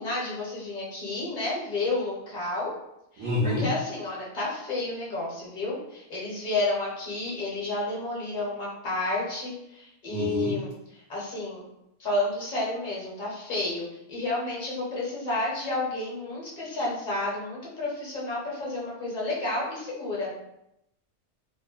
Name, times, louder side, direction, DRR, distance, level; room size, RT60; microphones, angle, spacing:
voice 1, 0.0-2.7 3.1-10.7 11.1-11.7 12.0-20.3, left 2 dB, 40° left, -5 dB, 0.8 m, -31 dB
voice 2, 3.2-3.7 10.1-10.6, left 1 dB, 65° right, -9 dB, 1.0 m, -27 dB
2.9 x 2.0 x 2.3 m, 0.83 s
omnidirectional pair, 1.4 m